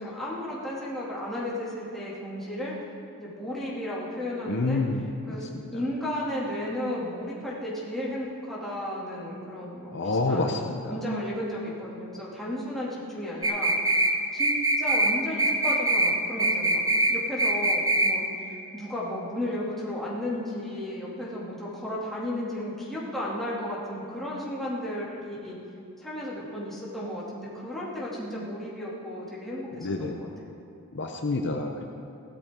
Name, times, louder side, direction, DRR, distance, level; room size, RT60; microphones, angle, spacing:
voice 1, 0.0-2.7 3.2-4.8 5.3-5.4 5.7-10.5 10.9-14.0 14.3-14.5 14.8-16.8 17.1-25.6 26.0-30.3, left 1 dB, ahead, -7 dB, 2.5 m, -34 dB
voice 2, 4.5-5.7 9.9-10.9 29.8-30.3 30.9-31.8, left 3 dB, 55° left, 3 dB, 0.7 m, -28 dB
sound 1, 13.4-14.1 14.4-15.1 15.4-16.1 16.4-17.1 17.4-18.1, right 2 dB, 15° right, 0.7 m, -23 dB
16.5 x 12.5 x 3.7 m, 2.7 s
head